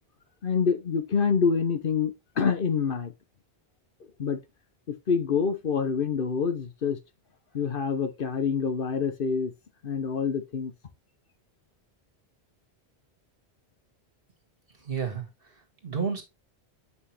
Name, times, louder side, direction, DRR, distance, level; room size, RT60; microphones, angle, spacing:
voice 1, 0.4-3.1 4.2-4.4 4.9-7.0 7.5-9.5 9.8-10.7, left 6 dB, 60° left, 1.0 m, -26 dB
voice 2, 14.8-16.2, right 6 dB, 60° right, 2.1 m, -32 dB
8.0 x 5.5 x 3.3 m
omnidirectional pair, 1.1 m